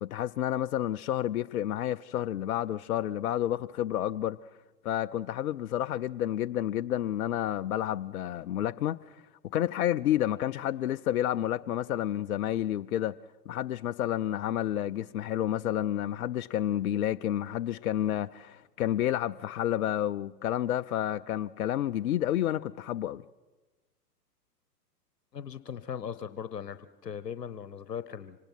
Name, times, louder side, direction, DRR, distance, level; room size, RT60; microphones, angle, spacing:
voice 1, 0.0-4.4 4.8-9.2 9.5-13.2 13.5-23.2, left 12 dB, 60° left, 0.6 m, -30 dB
voice 2, 25.3-28.4, left 8 dB, 80° left, 1.1 m, -39 dB
25.5 x 19.0 x 5.8 m
figure-of-eight pair, 110°, 48 cm